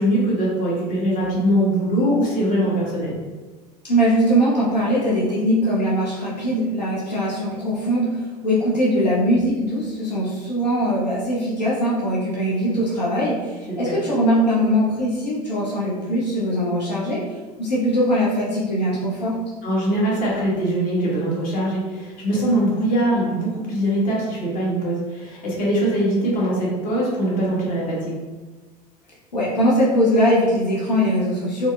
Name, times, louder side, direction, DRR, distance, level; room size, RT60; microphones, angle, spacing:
voice 1, 0.0-3.2 13.7-14.0 19.6-28.2, right 1 dB, 40° left, -5 dB, 1.2 m, -22 dB
voice 2, 3.8-17.2 17.6-19.3 29.3-31.7, equal, 85° left, -6 dB, 0.6 m, -21 dB
4.0 x 2.0 x 2.4 m, 1.3 s
figure-of-eight pair, 70°, 21 cm